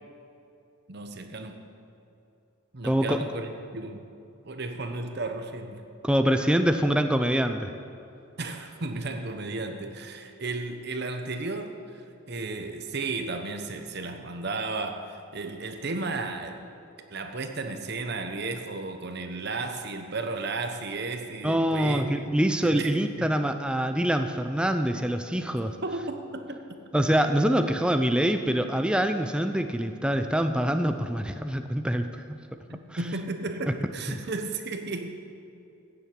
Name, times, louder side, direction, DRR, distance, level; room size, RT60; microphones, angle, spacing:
voice 1, 0.9-1.6 2.7-4.0 4.4-5.8 8.4-16.7 17.1-22.1 22.6-22.9 23.2-23.3 25.8-26.6 32.7-35.1, right 3 dB, 50° right, 6 dB, 0.9 m, -34 dB
voice 2, 2.8-3.2 6.0-7.7 21.4-25.8 26.9-32.4, equal, 5° right, 7 dB, 0.5 m, -25 dB
16.0 x 7.3 x 8.6 m, 2.7 s
head